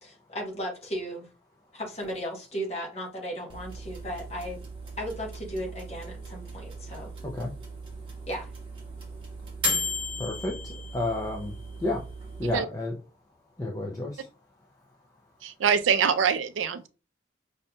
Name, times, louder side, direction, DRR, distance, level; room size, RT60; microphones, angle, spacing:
voice 1, 0.0-1.3 1.7-4.6 5.0-7.1 8.3-8.5, equal, 35° left, 1.1 m, -35 dB
sound 1, 3.5-12.6, left 1 dB, 25° right, 1.0 m, -36 dB
voice 2, 10.2-12.0 12.4-12.9 13.6-14.3, left 2 dB, 20° left, 0.4 m, -31 dB
voice 3, 15.4-16.9, right 7 dB, 85° right, 0.4 m, -24 dB
5.4 x 2.6 x 2.2 m
head